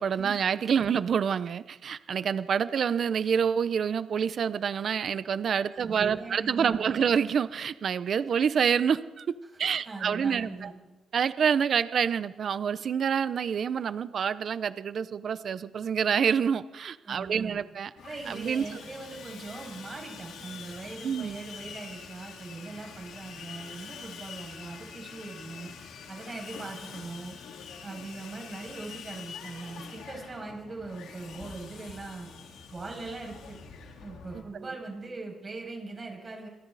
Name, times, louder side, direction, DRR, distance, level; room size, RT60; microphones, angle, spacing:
voice 1, 0.0-10.7 11.1-17.9 18.3-18.8 21.0-21.4, right 7 dB, 50° right, 14 dB, 0.8 m, -27 dB
voice 2, 5.7-7.0 9.7-10.7 17.0-17.6 18.0-25.7 26.1-27.3 27.8-32.3 32.7-33.6 34.0-36.5, right 3 dB, 30° right, 1 dB, 6.8 m, -41 dB
Sawing, 18.0-34.4, left 6 dB, 80° left, 4.1 m, -45 dB
28.0 x 22.5 x 4.2 m, 1.1 s
cardioid pair, 120°, 0 cm